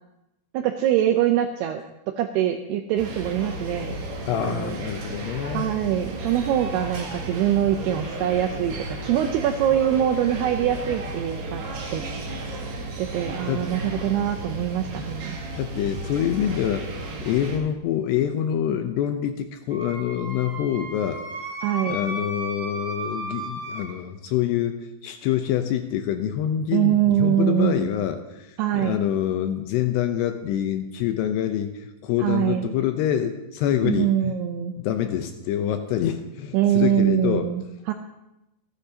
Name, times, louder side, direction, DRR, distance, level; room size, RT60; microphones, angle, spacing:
voice 1, 0.5-1.8 2.2-3.9 4.4-4.8 5.5-11.6 11.9-12.4 13.0-15.4 21.6-22.0 26.7-27.9 28.6-29.0 32.2-32.7 33.8-34.7 36.5-37.9, right 11 dB, 85° right, 6 dB, 2.3 m, -23 dB
sound 1, 3.0-17.6, right 1 dB, 65° right, 4.0 m, -34 dB
voice 2, 4.3-5.7 13.5-13.7 15.6-16.9 17.2-21.2 21.8-34.4 34.8-37.5, left 10 dB, 80° left, 7 dB, 2.6 m, -26 dB
Wind instrument woodwind instrument, 19.7-23.9, right 1 dB, 30° right, 3.5 m, -34 dB
28.0 x 10.0 x 2.8 m, 0.92 s
omnidirectional pair, 5.4 m